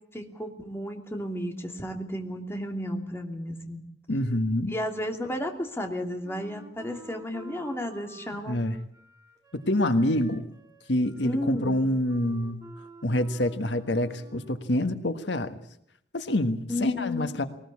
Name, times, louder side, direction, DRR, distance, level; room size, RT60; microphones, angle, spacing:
voice 1, 0.1-3.8 4.7-8.6 11.2-11.8 16.7-17.4, left 1 dB, 15° left, 3 dB, 2.8 m, -33 dB
voice 2, 4.1-4.7 8.5-8.8 9.7-10.4 10.9-12.6 13.0-15.6 16.1-17.4, left 1 dB, 90° left, 9 dB, 1.6 m, -26 dB
Wind instrument woodwind instrument, 6.2-14.7, equal, 20° right, 2.9 m, -49 dB
20.5 x 19.5 x 8.5 m, 0.71 s
head